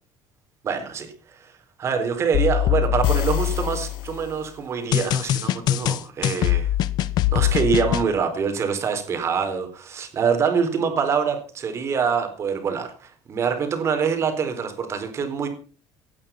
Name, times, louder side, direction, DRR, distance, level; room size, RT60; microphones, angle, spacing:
voice 1, 0.6-1.5 1.8-6.7 7.3-15.5, right 6 dB, 35° right, 4.1 m, -25 dB
sound 1, 2.3-4.2 4.9-8.0, left 13 dB, 55° left, 1.0 m, -22 dB
sound 2, 2.8-4.9, left 9 dB, 75° left, 4.5 m, -39 dB
17.5 x 11.0 x 5.9 m
cardioid pair, 155°, 8 cm